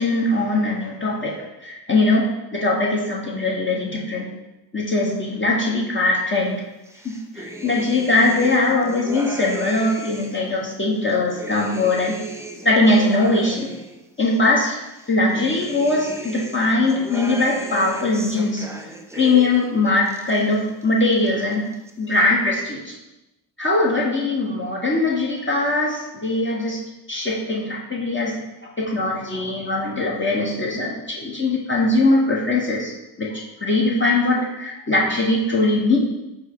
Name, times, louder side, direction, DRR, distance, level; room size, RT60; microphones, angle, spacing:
voice 1, 0.0-4.3 4.7-6.6 7.3-12.1 12.6-13.7 14.2-14.8 15.1-18.7 19.1-21.7 22.0-22.9 23.6-26.8 27.1-28.4 28.8-32.9 33.2-36.0, left 2 dB, 25° left, -4 dB, 1.0 m, -21 dB
sound 1, 6.9-10.5 11.0-14.4 14.9-19.7 20.0-20.8 21.1-21.9, right 1 dB, 5° right, 0.4 m, -36 dB
4.8 x 2.1 x 4.4 m, 0.96 s
supercardioid pair, 50°, 48 cm